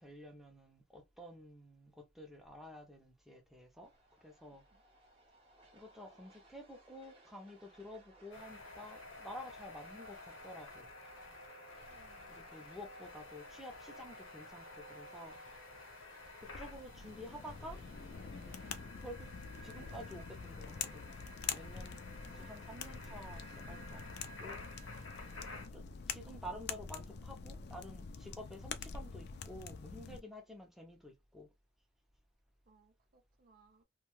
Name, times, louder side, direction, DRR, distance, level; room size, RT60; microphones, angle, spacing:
voice 1, 0.0-3.9 4.2-4.6 5.7-10.9 12.3-15.4 16.4-17.8 19.0-19.3 19.6-21.1 21.5-22.0 22.3-24.6 25.7-31.5, equal, ahead, 0.6 m, -50 dB
sound 1, 3.8-18.8, right 1 dB, 30° right, 0.9 m, -63 dB
sound 2, 8.3-25.7, left 2 dB, 85° left, 0.9 m, -52 dB
voice 2, 11.9-12.5 21.8-22.0 32.7-33.8, right 3 dB, 45° right, 0.4 m, -68 dB
sound 3, 16.4-30.2, left 6 dB, 55° left, 0.4 m, -46 dB
2.6 x 2.2 x 3.0 m
head